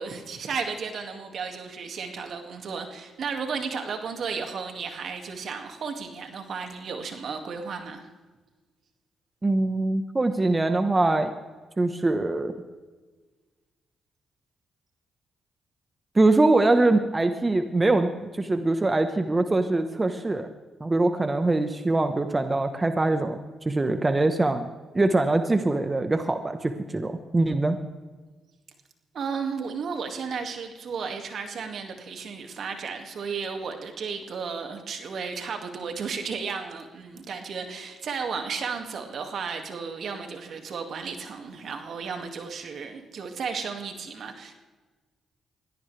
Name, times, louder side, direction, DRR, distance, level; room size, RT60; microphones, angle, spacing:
voice 1, 0.0-8.0 29.1-44.6, right 5 dB, 65° right, 5 dB, 2.3 m, -34 dB
voice 2, 9.4-11.3 11.8-12.5 16.1-20.5 20.8-23.4 23.6-24.6 24.9-27.8, right 2 dB, 25° right, 7 dB, 1.2 m, -23 dB
23.0 x 17.0 x 3.4 m, 1.3 s
supercardioid pair, 65°, 0 cm